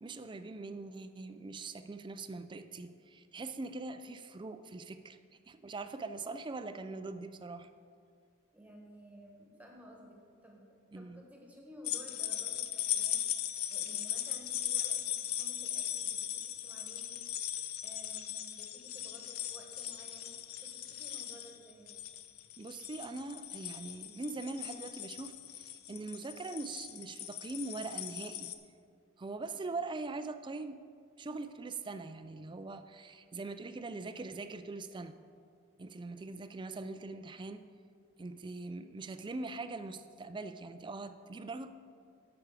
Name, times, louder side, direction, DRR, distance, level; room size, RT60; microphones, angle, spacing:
voice 1, 0.0-5.2 5.5-7.7 10.9-11.2 22.6-28.5 29.2-30.8 31.2-35.1 35.8-37.6 38.2-41.7, right 3 dB, 25° right, 10 dB, 0.4 m, -42 dB
voice 2, 8.5-10.2 10.4-10.7 10.9-13.2 13.7-21.9, equal, 5° right, 0 dB, 1.4 m, -55 dB
sound 1, 11.8-28.5, left 11 dB, 85° left, 0.6 m, -38 dB
13.0 x 6.1 x 4.9 m, 2.2 s
head